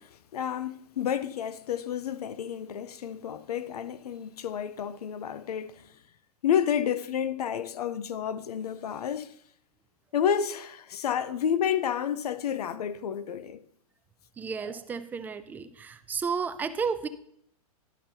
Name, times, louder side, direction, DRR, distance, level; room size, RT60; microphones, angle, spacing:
voice 1, 0.0-5.9 6.4-9.3 10.1-13.6, left 8 dB, 80° left, 0.6 m, -30 dB
voice 2, 14.4-17.1, right 5 dB, 10° right, 0.3 m, -32 dB
11.0 x 5.4 x 4.4 m
hypercardioid pair, 135°, 19 cm